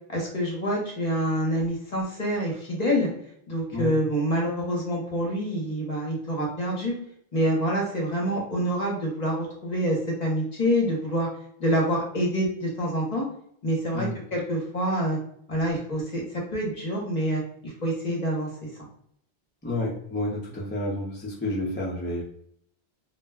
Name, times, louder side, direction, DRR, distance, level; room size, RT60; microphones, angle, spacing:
voice 1, 0.1-3.1 3.5-7.0 7.3-11.3 11.6-13.3 13.6-15.2 15.5-18.5, equal, 40° left, -2 dB, 0.9 m, -26 dB
voice 2, 19.6-22.2, left 1 dB, 15° left, -4 dB, 0.5 m, -30 dB
2.4 x 2.1 x 3.3 m, 0.67 s
omnidirectional pair, 1.1 m